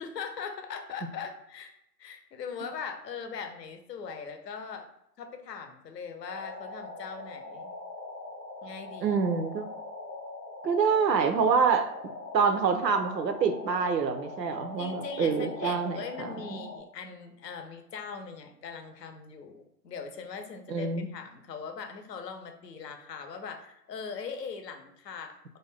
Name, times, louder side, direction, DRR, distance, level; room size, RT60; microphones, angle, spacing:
voice 1, 0.0-1.7 2.0-4.9 5.2-7.7 8.6-9.2 14.8-25.4, left 5 dB, 75° left, 5 dB, 0.6 m, -40 dB
sound 1, 6.2-16.8, left 3 dB, 15° right, 0.4 m, -42 dB
voice 2, 9.0-9.7 10.6-11.9 12.3-16.6 20.7-21.1, right 5 dB, 85° right, 7 dB, 0.6 m, -26 dB
2.5 x 2.1 x 3.3 m, 0.78 s
figure-of-eight pair, 120°, 49 cm